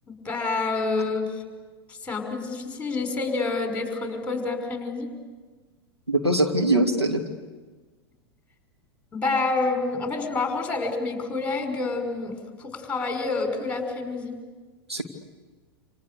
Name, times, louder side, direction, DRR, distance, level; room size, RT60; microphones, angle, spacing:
voice 1, 0.1-1.4 1.9-5.1 9.1-14.4, left 3 dB, 10° left, 4 dB, 5.4 m, -28 dB
voice 2, 6.1-7.2 14.9-15.0, right 1 dB, 90° right, 1 dB, 2.7 m, -22 dB
28.5 x 27.5 x 6.9 m, 1.4 s
figure-of-eight pair, 95°, 13 cm